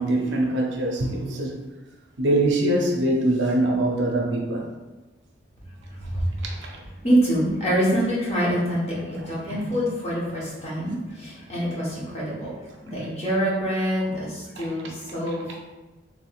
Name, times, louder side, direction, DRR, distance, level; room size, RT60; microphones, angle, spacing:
voice 1, 0.0-1.6 2.2-4.7 6.6-6.9 9.5-9.7 14.5-14.7 15.3-15.4, right 1 dB, 65° right, 0 dB, 0.5 m, -23 dB
voice 2, 5.9-6.4 7.0-15.6, equal, 30° left, -6 dB, 0.9 m, -26 dB
3.4 x 3.0 x 2.3 m, 1.2 s
head